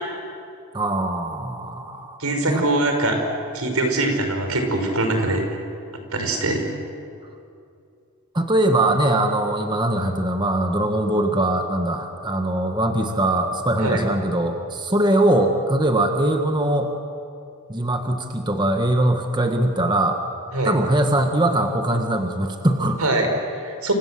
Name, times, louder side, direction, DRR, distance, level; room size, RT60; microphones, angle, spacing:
voice 1, 0.7-2.6 8.3-16.9 17.7-20.2 20.6-23.0, right 1 dB, 20° right, 4 dB, 1.5 m, -21 dB
voice 2, 2.2-3.2 3.5-5.4 6.1-6.6 13.8-14.0 20.5-20.7 23.0-23.9, right 2 dB, 85° right, 4 dB, 5.3 m, -22 dB
29.5 x 25.5 x 7.7 m, 2.5 s
head